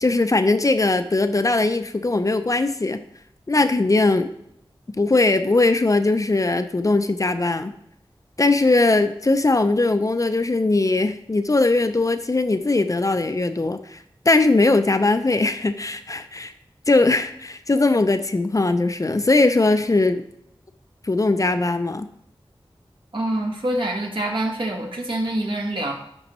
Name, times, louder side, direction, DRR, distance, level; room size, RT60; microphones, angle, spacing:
voice 1, 0.0-3.0 3.5-4.3 4.9-7.7 8.4-14.0 14.3-16.5 16.9-20.2 21.0-22.1, left 2 dB, 35° left, 9 dB, 0.5 m, -20 dB
voice 2, 23.1-25.9, right 1 dB, 60° right, 0 dB, 1.4 m, -25 dB
10.5 x 3.8 x 3.1 m, 0.75 s
wide cardioid pair, 55°, 10 cm